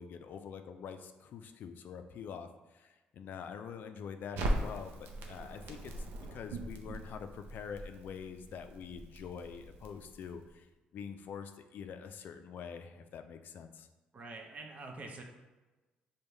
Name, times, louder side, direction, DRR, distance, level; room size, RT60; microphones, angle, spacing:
voice 1, 0.0-5.9 6.3-10.7 10.9-13.9, left 7 dB, 65° left, 8 dB, 0.4 m, -45 dB
Crackle, 4.3-10.5, right 1 dB, 85° right, 0.5 m, -40 dB
voice 2, 14.1-15.2, right 3 dB, 45° right, 2 dB, 0.7 m, -45 dB
5.2 x 2.2 x 3.2 m, 1.2 s
supercardioid pair, 75°, 3 cm